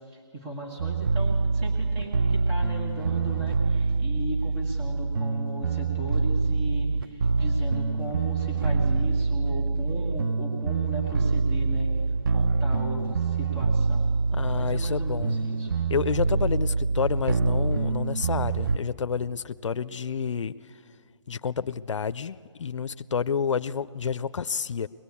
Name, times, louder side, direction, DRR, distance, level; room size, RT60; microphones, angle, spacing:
voice 1, 0.1-11.9 12.3-14.1 14.5-15.7, right 1 dB, 10° right, -1 dB, 1.5 m, -37 dB
sound 1, 0.8-18.8, right 4 dB, 45° right, 0.5 m, -25 dB
voice 2, 14.3-15.4 15.9-20.5 21.3-24.9, left 6 dB, 80° left, 14 dB, 0.5 m, -29 dB
23.5 x 19.5 x 8.4 m, 2.4 s
hypercardioid pair, 175°, 16 cm